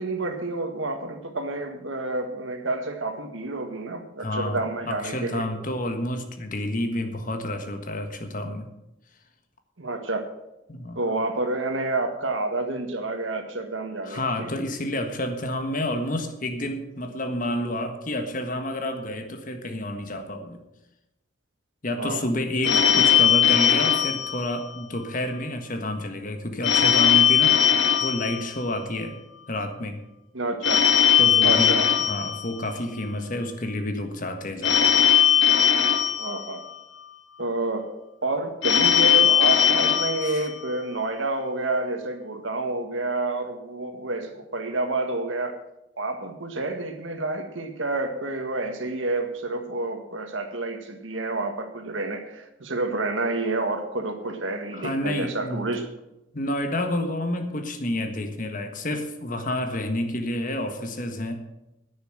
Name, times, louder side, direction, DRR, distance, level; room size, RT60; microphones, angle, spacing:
voice 1, 0.0-5.4 9.8-10.2 10.9-14.5 22.0-22.2 22.6-23.1 27.6-27.9 30.3-30.8 31.4-31.9 36.2-36.6 37.4-37.9 38.2-45.6 46.0-55.9, right 2 dB, 85° right, 6 dB, 1.8 m, -29 dB
voice 2, 4.2-4.6 4.9-8.7 10.7-11.0 14.0-20.6 21.8-27.6 28.0-29.2 29.5-30.0 31.2-31.7 32.0-34.9 40.2-40.4 54.7-55.7 56.3-61.4, left 1 dB, 45° left, 6 dB, 1.6 m, -29 dB
Telephone, 22.6-25.1 26.6-29.1 30.6-33.1 34.6-37.1 38.6-41.1, left 8 dB, 75° left, 1.8 m, -20 dB
10.5 x 9.6 x 7.7 m, 0.93 s
head